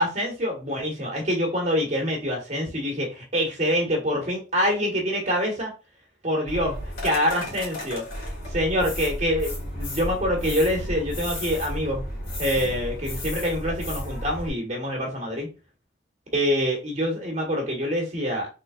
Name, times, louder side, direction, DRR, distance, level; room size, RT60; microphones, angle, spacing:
voice 1, 0.0-5.7 6.2-8.0 8.5-12.0 12.4-15.5 16.3-18.5, equal, 40° right, 0 dB, 1.5 m, -25 dB
sound 1, 6.5-14.5, equal, 55° left, 2.4 m, -33 dB
4.0 x 3.8 x 2.5 m, 0.29 s
head